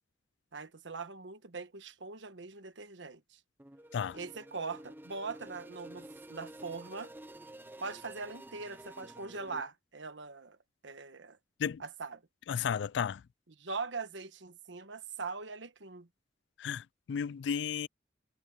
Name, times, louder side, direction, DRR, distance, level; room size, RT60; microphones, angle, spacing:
voice 1, 0.5-3.4 4.1-7.1 7.8-10.6 10.8-11.4 11.8-12.2 13.6-16.1, right 4 dB, 80° right, 1.3 m, -41 dB
sound 1, 3.6-9.6, right 1 dB, 10° right, 0.8 m, -50 dB
voice 2, 12.5-13.2 16.6-17.9, left 7 dB, 65° left, 0.3 m, -33 dB
head